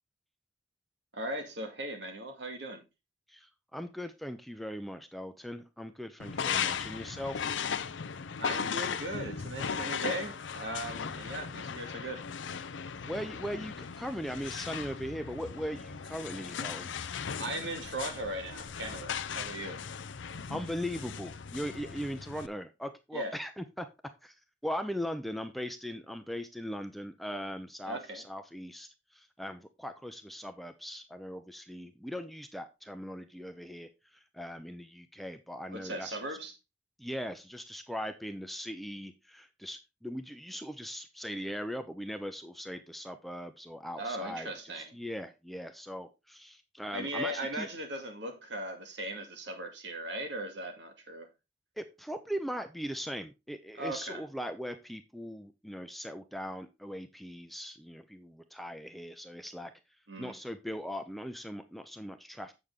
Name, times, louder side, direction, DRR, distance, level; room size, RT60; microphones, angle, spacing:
voice 1, 1.1-2.8 8.4-12.2 17.4-19.9 23.1-23.3 27.9-28.2 35.7-36.5 44.0-45.0 46.9-51.3 53.8-54.2 60.1-60.3, right 1 dB, 70° right, 2.3 m, -38 dB
voice 2, 3.3-7.5 13.0-16.9 20.5-23.9 24.2-24.4 24.6-36.4 37.0-47.7 51.8-59.7 60.2-62.5, equal, ahead, 0.7 m, -39 dB
sound 1, 6.2-22.5, left 7 dB, 85° left, 0.6 m, -37 dB
8.0 x 6.9 x 3.7 m
head